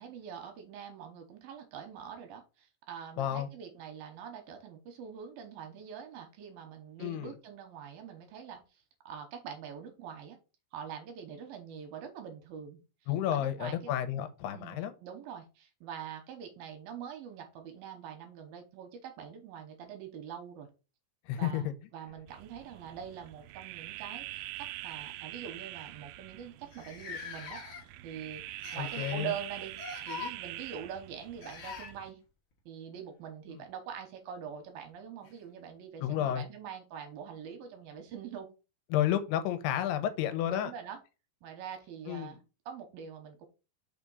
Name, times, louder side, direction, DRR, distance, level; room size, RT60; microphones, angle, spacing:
voice 1, 0.0-10.4 10.7-13.9 14.5-20.7 21.4-27.6 28.0-28.4 28.7-29.8 30.1-32.2 32.7-38.5 40.4-41.0 41.4-43.5, right 8 dB, 70° right, 2.6 m, -44 dB
voice 2, 3.2-3.5 7.0-7.3 13.1-14.9 21.3-21.6 28.8-29.3 36.0-36.4 38.9-40.7 42.1-42.4, left 11 dB, 85° left, 2.8 m, -31 dB
sound 1, 22.1-23.2 24.3-24.4 24.8-25.0 25.7-25.8 26.0-26.1 26.7-28.1 28.6-29.2 29.7-30.3 31.4-31.9 34.1-34.2 35.2-35.3, left 5 dB, 65° left, 1.2 m, -43 dB
sound 2, 22.3-32.1, right 16 dB, 90° right, 2.0 m, -44 dB
5.9 x 3.6 x 5.3 m
omnidirectional pair, 4.7 m